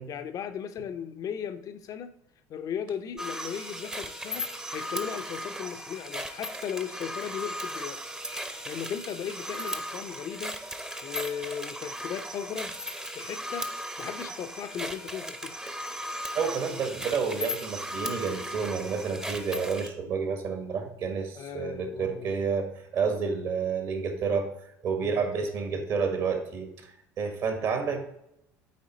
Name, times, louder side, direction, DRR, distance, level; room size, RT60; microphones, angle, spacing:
voice 1, 0.1-2.1 2.5-8.0 8.6-10.6 11.0-12.8 13.1-13.7 14.0-15.6 21.3-22.3 25.0-25.5 25.7-25.8, left 8 dB, 40° left, 10 dB, 0.6 m, -37 dB
Teletypefax loop, 3.2-19.9, equal, 10° right, 0.8 m, -37 dB
voice 2, 16.3-24.5 24.8-28.1, right 5 dB, 50° right, 5 dB, 1.5 m, -30 dB
8.6 x 4.2 x 3.9 m, 0.79 s
figure-of-eight pair, 65°, 9 cm